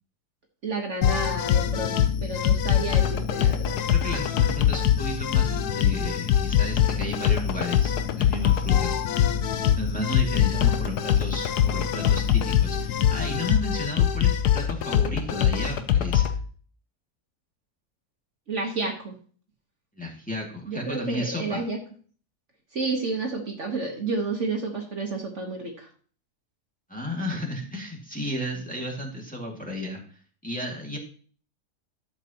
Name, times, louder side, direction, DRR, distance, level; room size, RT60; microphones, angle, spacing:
voice 1, 0.6-3.8 18.5-19.1 20.6-21.8 22.7-25.9, right 3 dB, 50° right, 1 dB, 1.5 m, -30 dB
sound 1, 1.0-16.3, left 9 dB, 80° left, 1.3 m, -23 dB
voice 2, 3.9-9.3 9.7-16.4 19.9-21.6 26.9-30.0 30.4-31.0, left 1 dB, 5° left, -2 dB, 2.1 m, -33 dB
12.0 x 7.4 x 2.9 m, 0.43 s
omnidirectional pair, 1.7 m